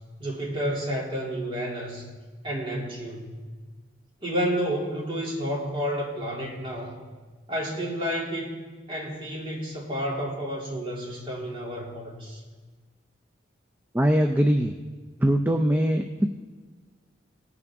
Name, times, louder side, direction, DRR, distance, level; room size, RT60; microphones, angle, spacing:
voice 1, 0.2-2.0 2.4-3.3 4.2-7.0 7.5-8.6 8.9-12.4, equal, 30° right, -3 dB, 2.7 m, -30 dB
voice 2, 13.9-14.7 15.2-16.3, equal, 10° right, 4 dB, 0.4 m, -22 dB
18.0 x 8.3 x 3.6 m, 1.4 s
head